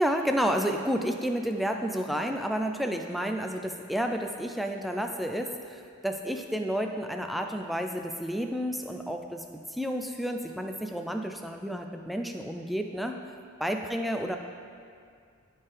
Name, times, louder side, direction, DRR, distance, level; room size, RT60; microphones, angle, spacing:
voice 1, 0.0-13.2 13.6-14.4, equal, ahead, 3 dB, 0.3 m, -30 dB
13.0 x 4.4 x 3.4 m, 2.2 s
head